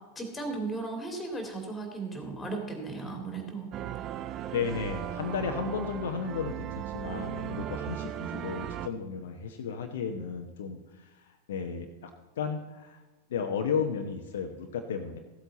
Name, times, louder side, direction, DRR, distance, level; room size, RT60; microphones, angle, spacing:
voice 1, 0.2-3.7, right 3 dB, 10° left, 4 dB, 2.7 m, -36 dB
sound 1, 3.7-8.9, right 11 dB, 35° right, 0.5 m, -37 dB
voice 2, 4.5-10.8 11.5-12.1 12.4-13.0 13.3-15.2, left 6 dB, 60° left, 5 dB, 0.9 m, -33 dB
15.0 x 8.1 x 4.1 m, 1.2 s
figure-of-eight pair, 90°, 0 cm